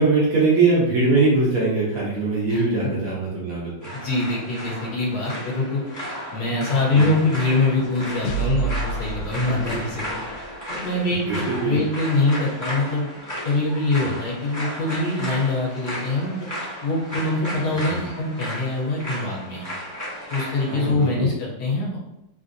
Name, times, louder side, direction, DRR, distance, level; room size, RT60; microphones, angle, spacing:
voice 1, 0.0-3.9 6.9-7.1 9.5-9.6 10.3-10.4 11.3-11.8 14.0-14.1 17.9-18.0 20.7-21.3, right 3 dB, 65° right, -5 dB, 0.9 m, -22 dB
voice 2, 2.5-3.0 3.9-5.8 6.3-10.2 10.7-13.1 13.4-16.5 16.8-19.7 20.3-22.0, left 2 dB, 65° left, -3 dB, 1.3 m, -24 dB
sound 1, 3.8-20.9, equal, 15° left, 0.7 m, -34 dB
sound 2, 7.4-10.5, right 4 dB, 85° left, 1.3 m, -30 dB
3.3 x 2.6 x 2.5 m, 0.86 s
omnidirectional pair, 2.0 m